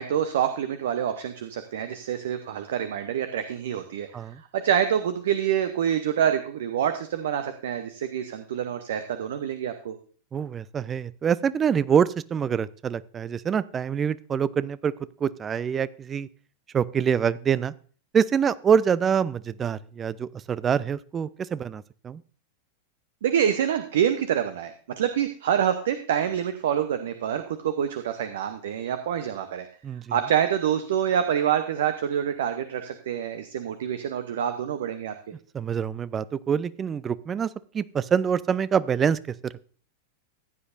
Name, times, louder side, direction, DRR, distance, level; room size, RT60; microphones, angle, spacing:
voice 1, 0.0-9.9 23.2-29.7 30.1-35.1, right 9 dB, 60° right, 9 dB, 0.8 m, -26 dB
voice 2, 10.3-14.9 15.2-16.3 16.7-17.7 18.1-22.2 29.8-30.2 35.5-37.5 37.7-39.6, right 7 dB, 20° right, 19 dB, 0.4 m, -25 dB
15.0 x 9.8 x 2.6 m, 0.42 s
figure-of-eight pair, 90°, 0 cm